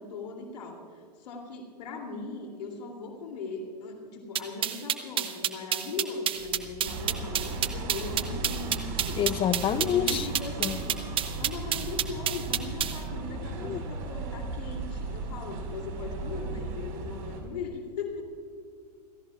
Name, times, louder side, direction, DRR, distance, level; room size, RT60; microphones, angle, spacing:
voice 1, 0.0-9.3 9.8-11.0 11.4-18.2, left 4 dB, 75° left, 2.9 m, -39 dB
sound 1, 4.4-13.0, right 10 dB, 25° right, 1.0 m, -28 dB
sound 2, 6.3-17.1, right 3 dB, 90° right, 3.4 m, -43 dB
sound 3, 6.8-17.4, right 3 dB, 55° right, 4.9 m, -37 dB
voice 2, 9.2-10.3 10.6-10.8 13.6-13.8, left 10 dB, 25° left, 0.6 m, -27 dB
29.5 x 16.5 x 2.4 m
hypercardioid pair, 115°, 21 cm